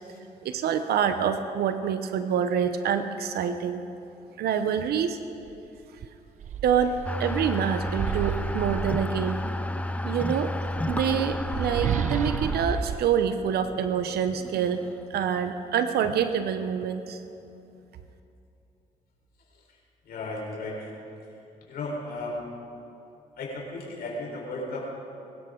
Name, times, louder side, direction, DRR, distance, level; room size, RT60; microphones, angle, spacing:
voice 1, 0.4-3.8 4.4-5.2 6.6-9.4 10.0-10.5 10.9-14.8 15.1-17.2, right 8 dB, 70° right, 9 dB, 0.8 m, -26 dB
sound 1, 5.4-5.6 6.0-9.6 10.6-14.2, right 10 dB, 50° right, 0.4 m, -33 dB
sound 2, 7.0-15.2, left 1 dB, 10° left, 0.6 m, -32 dB
voice 2, 20.1-20.9 21.7-22.4 23.4-24.8, left 2 dB, 70° left, -2 dB, 4.2 m, -34 dB
22.0 x 13.0 x 3.8 m, 2.7 s
supercardioid pair, 70°, 17 cm